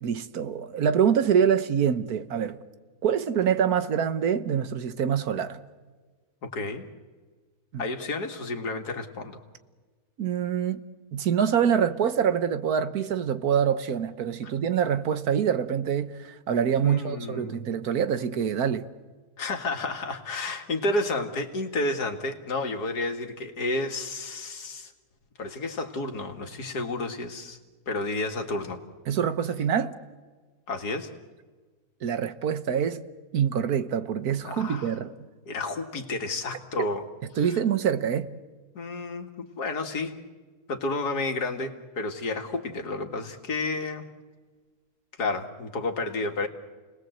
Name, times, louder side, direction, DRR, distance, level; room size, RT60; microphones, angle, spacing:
voice 1, 0.0-2.6 3.0-5.6 7.7-7.8 10.2-10.8 11.1-18.9 29.1-29.9 32.0-33.0 33.3-35.1 37.4-38.3, right 8 dB, 75° right, 1.6 m, -25 dB
voice 2, 6.4-6.9 7.8-9.4 16.8-17.7 19.4-24.9 25.4-27.6 27.9-28.8 30.7-31.1 34.4-34.9 35.5-37.0 37.5-37.6 38.7-40.2 40.7-44.0 45.2-46.5, left 2 dB, 80° left, 2.5 m, -31 dB
30.0 x 20.0 x 7.9 m
omnidirectional pair, 1.7 m